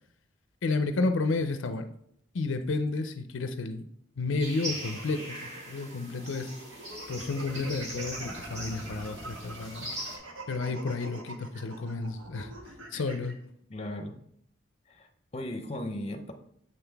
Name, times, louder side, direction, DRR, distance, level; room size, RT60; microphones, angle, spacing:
voice 1, 0.6-1.9 2.3-3.8 4.2-6.5 7.1-9.9 10.5-12.5 12.9-13.4, left 3 dB, 75° left, 8 dB, 0.5 m, -31 dB
sound 1, 4.4-10.2, equal, 35° right, 1.6 m, -41 dB
sound 2, 4.7-13.3, right 2 dB, 75° right, 1.2 m, -45 dB
sound 3, 5.6-10.9, equal, 10° right, 1.1 m, -50 dB
voice 2, 13.7-14.2 14.9-15.1 15.3-16.3, left 1 dB, 30° left, 5 dB, 0.7 m, -36 dB
7.6 x 5.7 x 3.4 m, 0.70 s
head